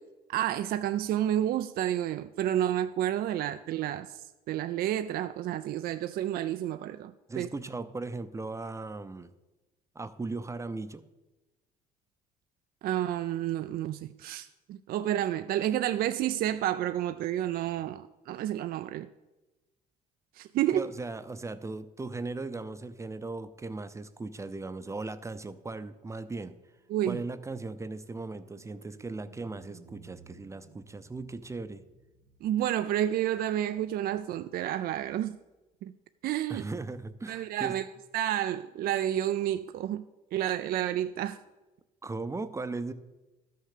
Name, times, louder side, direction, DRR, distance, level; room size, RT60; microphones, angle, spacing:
voice 1, 0.3-7.5 12.8-19.1 20.3-20.9 26.9-27.2 32.4-35.3 35.8-35.9 36.2-36.7 37.3-37.9 38.1-40.0 40.3-41.4, right 12 dB, 60° right, 0.4 m, -30 dB
voice 2, 7.3-9.3 9.9-11.0 20.7-26.5 27.1-31.8 36.5-37.8 42.0-42.9, right 3 dB, 15° right, 0.6 m, -38 dB
sound 1, 26.0-35.4, right 5 dB, 85° right, 1.8 m, -59 dB
12.5 x 6.5 x 6.6 m
cardioid pair, 110°, 17 cm